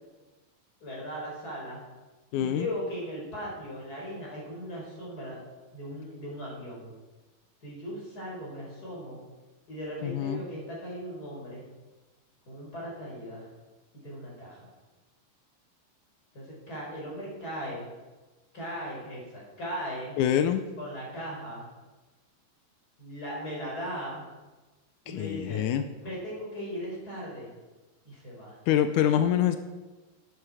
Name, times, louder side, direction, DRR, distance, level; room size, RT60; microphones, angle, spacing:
voice 1, 0.8-1.8 2.3-5.4 5.7-6.9 7.6-9.2 9.7-11.7 12.5-13.5 14.0-14.7 16.3-17.9 18.5-20.1 20.8-21.7 23.0-24.2 25.0-25.7 26.0-27.5 28.0-28.6, equal, 25° left, -4 dB, 4.8 m, -38 dB
voice 2, 2.3-2.7 10.0-10.4 20.2-20.6 25.1-25.8 28.7-29.6, left 10 dB, 85° left, 9 dB, 1.7 m, -25 dB
11.5 x 10.5 x 4.9 m, 1.2 s
omnidirectional pair, 4.3 m